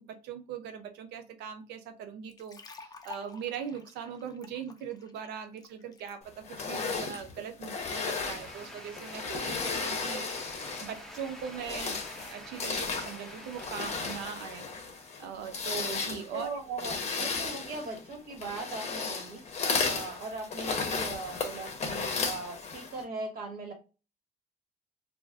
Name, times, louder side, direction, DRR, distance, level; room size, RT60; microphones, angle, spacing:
voice 1, 0.0-12.0 12.3-16.5, right 8 dB, 85° right, 0.5 m, -41 dB
sound 1, 2.3-6.1, left 4 dB, 25° left, 0.4 m, -50 dB
sound 2, 6.5-11.0 11.5-23.0, left 4 dB, 40° left, 0.8 m, -34 dB
Ambience Rain Moderate C, 8.4-14.3, equal, ahead, 0.8 m, -47 dB
voice 2, 16.3-19.4 19.8-23.7, right 3 dB, 60° right, 1.4 m, -39 dB
2.5 x 2.3 x 3.3 m
cardioid pair, 110°, 17 cm